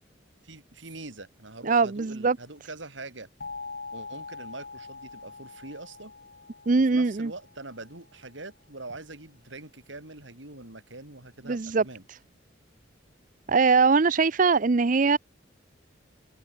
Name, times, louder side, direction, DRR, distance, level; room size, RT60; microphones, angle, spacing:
voice 1, 0.4-3.3 3.9-6.1 6.9-12.0, right 2 dB, 80° right, 5.3 m, -43 dB
voice 2, 1.6-2.4 6.7-7.3 11.5-11.8 13.5-15.2, right 4 dB, 45° right, 0.5 m, -21 dB
sound 1, 3.4-8.1, left 4 dB, 55° left, 2.5 m, -43 dB
head